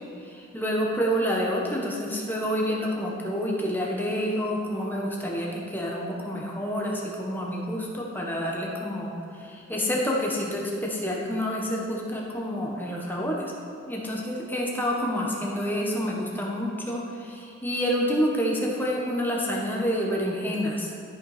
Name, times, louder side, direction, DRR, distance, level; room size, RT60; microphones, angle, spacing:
voice 1, 0.2-13.5 13.9-20.9, equal, 10° left, -2 dB, 1.3 m, -28 dB
13.0 x 5.6 x 5.0 m, 2.4 s
head